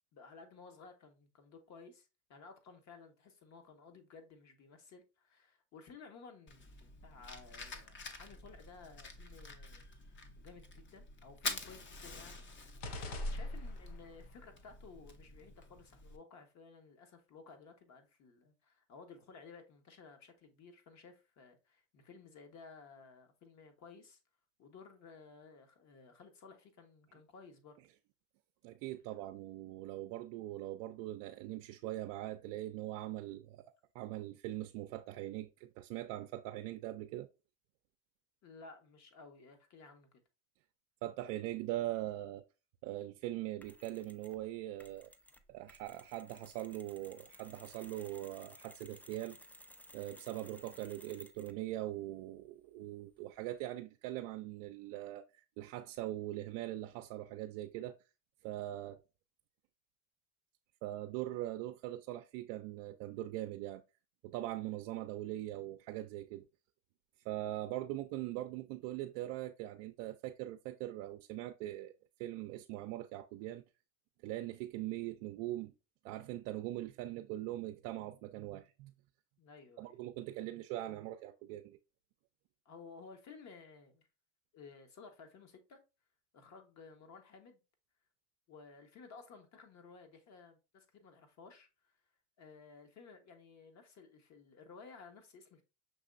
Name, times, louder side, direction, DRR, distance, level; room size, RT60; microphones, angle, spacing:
voice 1, 0.1-9.8 10.4-12.4 13.3-24.2 24.6-27.8 38.4-40.2 79.4-80.0 82.6-84.1 84.5-85.8 86.3-87.6 88.5-91.9 92.4-95.6, left 4 dB, 45° left, 1.2 m, -56 dB
Fire, 6.5-16.2, left 2 dB, 30° left, 0.8 m, -46 dB
sound 1, 12.8-14.1, left 3 dB, 80° left, 1.0 m, -45 dB
voice 2, 28.6-37.3 41.0-42.4 42.8-45.1 45.5-49.4 49.9-58.0 58.4-59.0 60.8-63.8 64.2-66.5 67.2-71.9 72.2-73.6 74.2-75.7 76.0-78.9 79.8-81.8, right 15 dB, 75° right, 0.5 m, -41 dB
Mechanisms, 43.6-44.4 44.8-51.7, equal, 5° left, 0.4 m, -58 dB
6.0 x 3.0 x 2.5 m
supercardioid pair, 105°, 37 cm